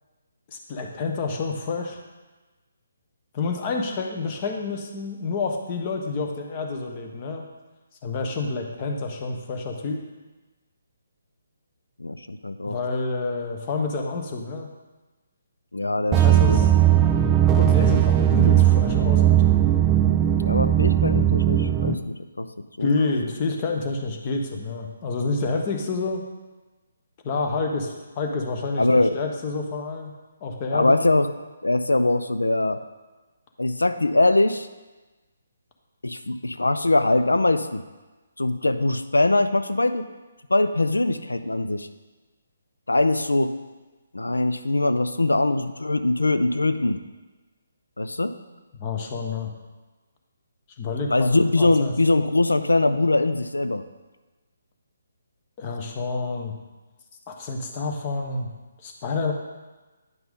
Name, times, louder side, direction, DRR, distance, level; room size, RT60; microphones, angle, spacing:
voice 1, 0.5-2.0 3.3-7.5 8.0-10.0 12.6-14.7 16.2-16.7 17.6-19.6 22.8-26.2 27.2-30.1 30.4-31.0 48.8-49.5 50.8-51.3 51.6-51.9 55.6-56.5 57.3-58.5 58.8-59.3, left 3 dB, 30° left, 2 dB, 1.1 m, -28 dB
voice 2, 12.0-12.8 15.7-16.6 20.4-22.5 22.8-22.9 28.8-29.2 30.7-31.3 31.6-32.8 33.6-34.7 36.0-37.8 38.4-40.1 40.5-41.9 42.9-43.5 44.1-47.0 48.0-48.3 51.1-53.8, left 2 dB, 90° left, 10 dB, 0.5 m, -22 dB
sound 1, 16.1-21.9, right 11 dB, 15° right, 0.5 m, -18 dB
9.4 x 5.8 x 3.7 m, 1.2 s
figure-of-eight pair, 145°, 0 cm